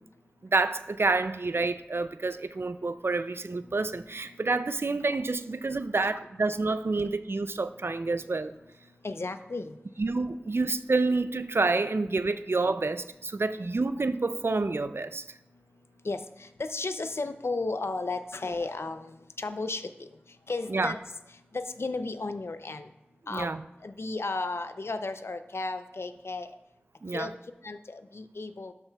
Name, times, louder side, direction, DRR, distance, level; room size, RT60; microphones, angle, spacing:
voice 1, 0.5-8.5 10.0-15.2 20.7-20.9 23.3-23.6 27.0-27.3, right 3 dB, 70° right, 12 dB, 0.4 m, -28 dB
voice 2, 3.6-4.0 4.3-4.4 6.0-6.1 9.0-9.8 16.0-20.1 20.5-21.0 21.5-22.9 23.3-23.5 23.8-26.5 27.1-27.3 27.6-28.7, left 3 dB, 90° left, 10 dB, 0.4 m, -34 dB
12.5 x 7.0 x 2.3 m, 0.90 s
wide cardioid pair, 40°, 4 cm